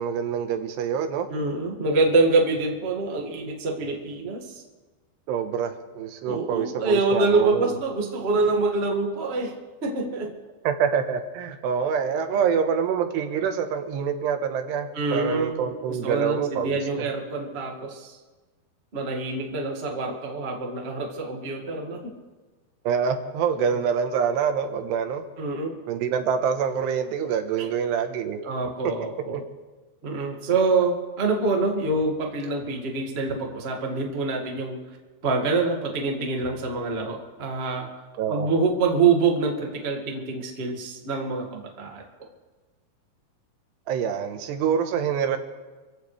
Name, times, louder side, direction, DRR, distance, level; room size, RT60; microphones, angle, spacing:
voice 1, 0.0-1.3 5.3-7.8 10.6-17.1 22.8-25.2 25.9-28.4 28.8-28.9 29.3-29.4 38.2-38.5 43.9-45.4, right 7 dB, 80° right, 6 dB, 3.2 m, -26 dB
voice 2, 1.3-4.6 6.3-9.5 9.8-10.4 14.9-18.1 18.9-22.1 25.4-25.7 28.4-29.4 30.0-34.8 35.2-37.9 38.3-42.0, right 3 dB, 60° right, 0 dB, 0.6 m, -25 dB
25.5 x 15.5 x 3.3 m, 1.3 s
omnidirectional pair, 4.9 m